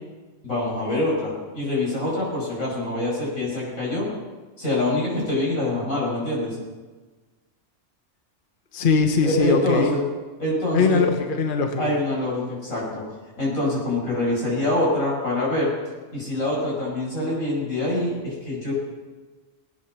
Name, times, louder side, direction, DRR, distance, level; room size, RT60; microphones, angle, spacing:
voice 1, 0.4-4.1 4.6-6.6 9.2-10.0 10.4-11.0 11.8-13.0 13.4-15.7 16.1-18.7, left 1 dB, 85° left, -4 dB, 6.2 m, -25 dB
voice 2, 8.7-9.9 10.7-11.9, left 4 dB, 40° left, 4 dB, 1.2 m, -21 dB
19.5 x 9.4 x 6.0 m, 1.3 s
omnidirectional pair, 1.4 m